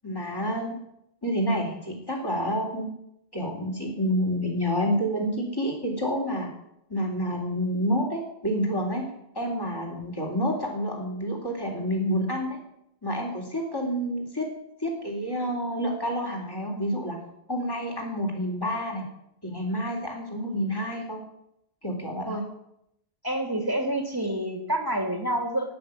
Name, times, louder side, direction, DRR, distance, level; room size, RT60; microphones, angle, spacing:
voice 1, 0.0-0.7 1.2-2.9 3.3-6.5 6.9-9.1 9.4-12.6 13.0-14.5 14.8-17.2 17.5-19.0 19.4-21.2 21.8-22.4, equal, 20° left, 0 dB, 3.4 m, -28 dB
voice 2, 23.2-25.7, right 1 dB, 15° right, 4 dB, 2.5 m, -28 dB
14.0 x 8.7 x 9.5 m, 0.79 s
omnidirectional pair, 1.1 m